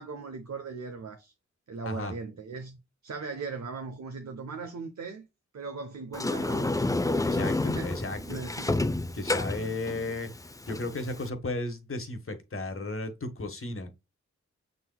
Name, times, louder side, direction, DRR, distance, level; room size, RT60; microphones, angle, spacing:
voice 1, 0.0-1.3 1.7-5.3 5.5-6.9 7.3-9.0, right 4 dB, 65° right, 0.9 m, -39 dB
voice 2, 1.8-2.1 7.2-8.4 9.1-10.3 10.7-13.9, left 2 dB, 45° left, 1.3 m, -34 dB
Sliding door, 6.1-11.3, left 2 dB, 10° left, 0.5 m, -30 dB
6.0 x 3.9 x 2.2 m
cardioid pair, 50°, 30 cm